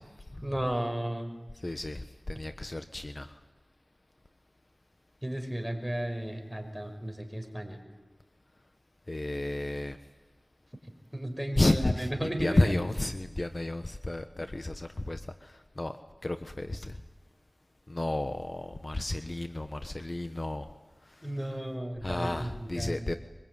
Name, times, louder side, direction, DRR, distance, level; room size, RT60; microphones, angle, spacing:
voice 1, 0.4-1.3 5.2-7.8 11.1-12.6 14.4-14.5 21.2-23.0, right 1 dB, 5° right, 5 dB, 5.6 m, -34 dB
voice 2, 1.6-3.3 9.1-10.0 11.6-16.0 16.2-17.0 17.9-20.7 22.0-23.1, left 2 dB, 45° left, 8 dB, 1.2 m, -31 dB
24.0 x 21.0 x 9.4 m, 1.3 s
wide cardioid pair, 40°, 0 cm